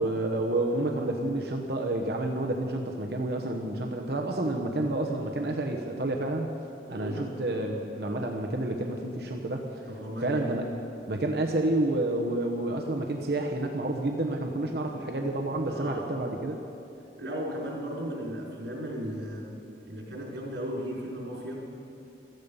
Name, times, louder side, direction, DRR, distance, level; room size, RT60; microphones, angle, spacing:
voice 1, 0.0-6.5 6.9-9.6 10.2-10.7 11.1-16.6, right 2 dB, 65° right, 2 dB, 1.0 m, -29 dB
voice 2, 6.9-7.3 9.9-10.5 15.7-16.4 17.2-19.6 19.9-21.6, equal, 80° right, -4 dB, 4.6 m, -36 dB
16.0 x 14.0 x 5.5 m, 2.8 s
head